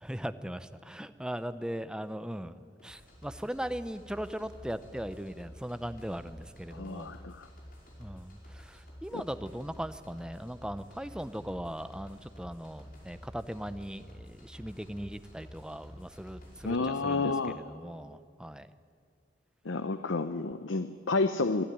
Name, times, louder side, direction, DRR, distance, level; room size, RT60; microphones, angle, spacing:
voice 1, 0.0-7.2 8.0-18.7, equal, 5° right, 12 dB, 0.6 m, -39 dB
sound 1, 2.8-16.7, equal, 45° left, 5.4 m, -50 dB
voice 2, 6.7-7.5 9.1-9.2 16.6-17.6 19.6-21.6, left 3 dB, 85° left, 10 dB, 0.8 m, -30 dB
23.5 x 12.5 x 10.0 m, 2.2 s
head